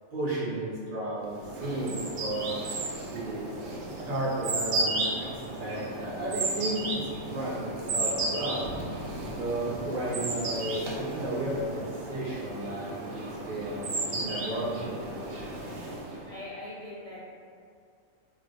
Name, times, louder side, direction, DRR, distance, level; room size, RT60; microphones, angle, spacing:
voice 1, 0.1-3.5 4.0-8.7 9.3-14.9, right 1 dB, 55° right, -8 dB, 0.6 m, -33 dB
sound 1, 1.3-16.3, right 2 dB, 80° right, 1.0 m, -34 dB
voice 2, 16.3-17.2, left 1 dB, 70° left, -9 dB, 0.3 m, -41 dB
2.4 x 2.3 x 4.0 m, 2.3 s
omnidirectional pair, 1.4 m